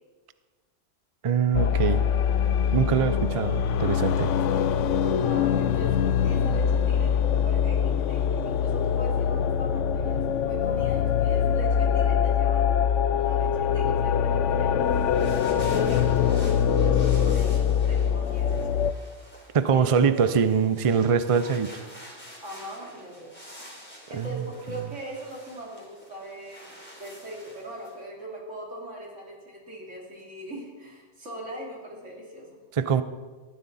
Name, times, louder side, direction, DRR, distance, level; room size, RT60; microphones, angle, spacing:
voice 1, 1.2-2.0 2.7-4.3 19.5-21.7 24.1-24.5 32.7-33.0, right 6 dB, 40° right, 13 dB, 0.5 m, -23 dB
sound 1, 1.5-18.9, left 8 dB, 80° left, 1.0 m, -23 dB
voice 2, 5.0-14.9 15.5-18.9 19.7-20.5 22.4-23.3 24.1-32.6, right 1 dB, 80° right, -2 dB, 3.5 m, -40 dB
sound 2, 14.8-27.9, equal, 10° left, 3.6 m, -48 dB
19.5 x 13.5 x 4.1 m, 1.4 s
omnidirectional pair, 1.2 m